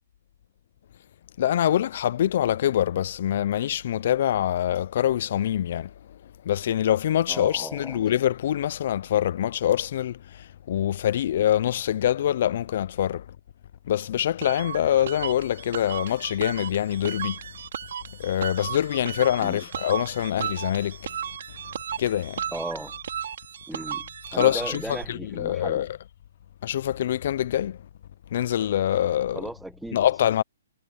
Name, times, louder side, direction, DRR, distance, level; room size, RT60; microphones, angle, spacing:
voice 1, 1.4-6.2 6.4-13.3 13.9-17.4 18.2-21.1 22.0-22.4 24.3-25.9 26.6-27.8 28.3-29.5 29.9-30.4, left 11 dB, 55° left, 0.4 m, -25 dB
voice 2, 7.3-8.0 19.4-19.6 22.5-23.0 23.7-25.9 29.3-30.0, right 1 dB, 5° right, 0.9 m, -36 dB
sound 1, 14.4-25.0, right 8 dB, 65° right, 2.1 m, -35 dB
hypercardioid pair, 145°, 0 cm